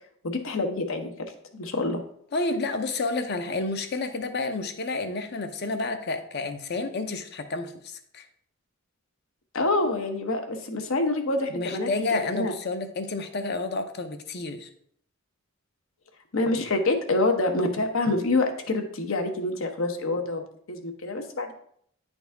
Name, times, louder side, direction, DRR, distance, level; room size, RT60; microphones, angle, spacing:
voice 1, 0.2-1.1 1.5-2.0 9.5-12.5 16.3-20.4 20.7-21.5, left 2 dB, 75° left, 5 dB, 0.9 m, -26 dB
voice 2, 2.3-8.3 11.5-14.7, left 3 dB, 50° left, 7 dB, 0.7 m, -30 dB
9.5 x 4.0 x 3.5 m, 0.65 s
head